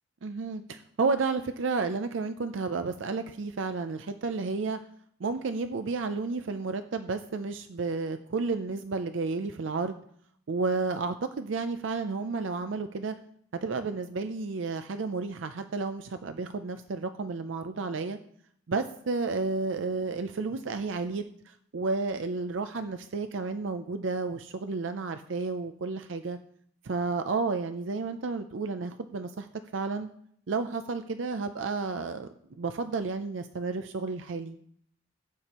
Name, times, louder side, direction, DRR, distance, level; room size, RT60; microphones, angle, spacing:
voice 1, 0.2-4.8 5.2-10.0 10.5-13.1 13.6-18.2 18.7-26.4 26.8-29.5 29.7-30.1 30.5-32.3 32.6-34.6, right 4 dB, 70° right, 9 dB, 0.5 m, -31 dB
16.0 x 8.5 x 3.0 m, 0.66 s
head